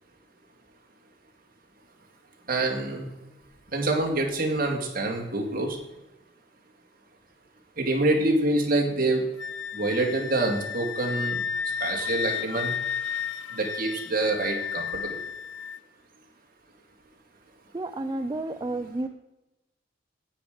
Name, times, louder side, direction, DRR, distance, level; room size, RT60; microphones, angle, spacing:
voice 1, 2.5-3.1 3.7-5.8 7.8-9.2 9.7-11.4 11.8-12.7 13.5-15.2, right 2 dB, 50° right, 0 dB, 2.3 m, -26 dB
Wind instrument woodwind instrument, 9.4-15.8, left 7 dB, 80° left, 0.5 m, -32 dB
voice 2, 17.7-19.1, right 2 dB, 20° right, 7 dB, 0.4 m, -31 dB
9.9 x 8.4 x 5.0 m, 0.97 s
head